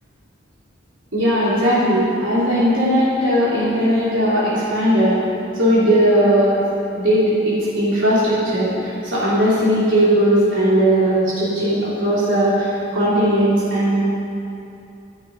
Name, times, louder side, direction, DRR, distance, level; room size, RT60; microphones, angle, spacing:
voice 1, 1.1-5.2 5.5-6.5 6.9-14.0, equal, 80° right, -10 dB, 3.4 m, -18 dB
11.5 x 11.0 x 5.3 m, 2.7 s
head